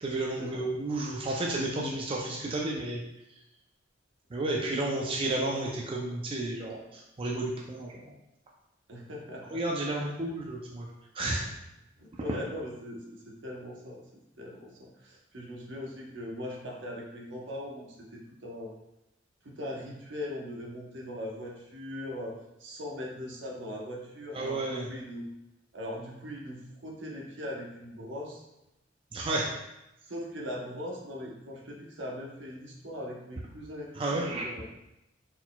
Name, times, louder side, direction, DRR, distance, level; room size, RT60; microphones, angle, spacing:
voice 1, 0.0-3.0 4.3-8.1 9.5-10.9 11.1-11.4 12.3-12.4 24.3-24.9 29.1-29.5 34.0-34.4, right 2 dB, 30° right, -2 dB, 0.4 m, -32 dB
voice 2, 8.9-9.6 10.0-10.2 12.0-14.0 14.4-18.7 19.4-25.2 25.7-28.4 30.1-34.6, left 1 dB, 70° right, -2 dB, 0.9 m, -40 dB
4.3 x 3.9 x 2.2 m, 0.89 s
head